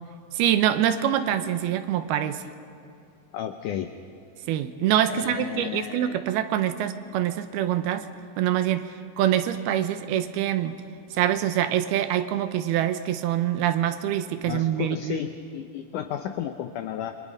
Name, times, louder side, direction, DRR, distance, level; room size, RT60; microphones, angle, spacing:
voice 1, 0.3-2.4 4.5-8.1 8.4-8.9 9.2-10.8 11.1-15.2, right 11 dB, 85° right, 10 dB, 2.8 m, -25 dB
voice 2, 3.3-3.9 5.1-6.2 14.5-17.1, left 10 dB, 80° left, 8 dB, 1.8 m, -33 dB
28.5 x 22.5 x 5.3 m, 2.6 s
omnidirectional pair, 4.5 m